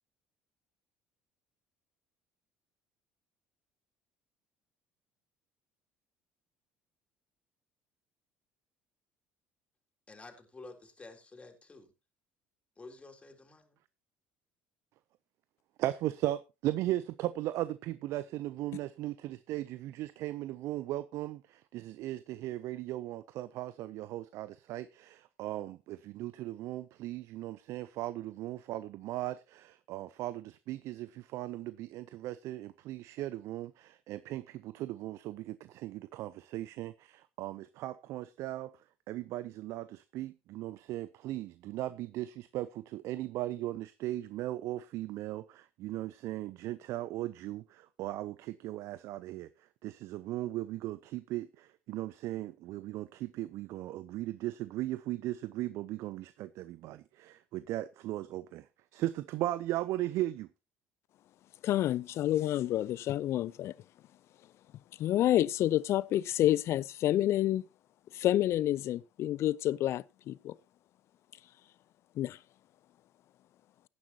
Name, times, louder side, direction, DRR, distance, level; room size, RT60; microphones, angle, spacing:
voice 1, 10.1-11.9 12.8-13.8, left 3 dB, 20° left, 3.7 m, -51 dB
voice 2, 15.8-38.7 39.1-49.5 49.8-58.6 58.9-60.5, right 15 dB, 65° right, 0.6 m, -37 dB
voice 3, 61.6-63.7 65.0-67.6 68.1-70.5 72.2-72.4, left 13 dB, 55° left, 0.5 m, -29 dB
16.5 x 9.7 x 2.8 m
hypercardioid pair, 60°, 5 cm